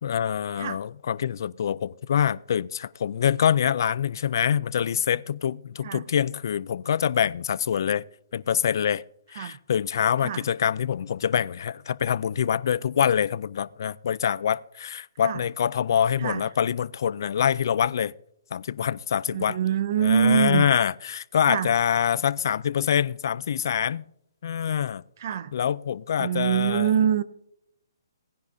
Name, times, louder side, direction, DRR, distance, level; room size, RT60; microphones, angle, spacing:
voice 1, 0.0-8.0 8.3-9.0 9.3-18.1 18.5-19.6 20.0-24.0 24.4-25.0 25.5-26.9, left 8 dB, 55° left, 0.4 m, -25 dB
voice 2, 19.3-20.7 21.5-21.7 25.2-25.5 26.2-27.2, right 8 dB, 45° right, 0.6 m, -24 dB
18.0 x 10.0 x 2.7 m
hypercardioid pair, 165°, 2 cm